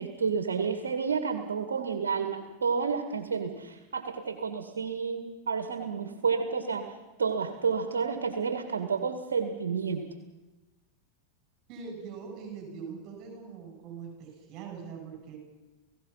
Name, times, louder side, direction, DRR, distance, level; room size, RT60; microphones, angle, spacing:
voice 1, 0.0-6.9 7.2-10.0, right 5 dB, 80° right, 7 dB, 1.9 m, -30 dB
voice 2, 11.7-15.4, right 6 dB, 45° right, 2 dB, 7.4 m, -42 dB
29.5 x 16.5 x 5.7 m, 1.1 s
hypercardioid pair, 95°, 0 cm